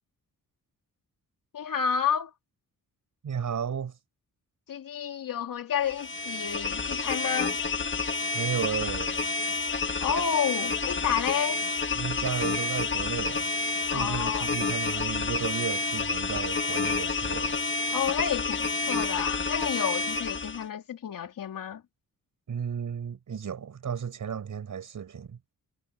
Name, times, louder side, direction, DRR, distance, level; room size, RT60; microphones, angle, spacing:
voice 1, 1.5-2.3 4.7-7.6 10.0-11.6 13.9-14.5 17.9-21.8, left 8 dB, 75° left, 3.2 m, -30 dB
voice 2, 3.2-3.9 8.3-9.1 11.9-13.4 13.9-17.6 22.5-25.4, right 7 dB, 65° right, 5.1 m, -33 dB
sound 1, 5.8-20.6, left 3 dB, 35° left, 1.9 m, -29 dB
cardioid pair, 100°, 33 cm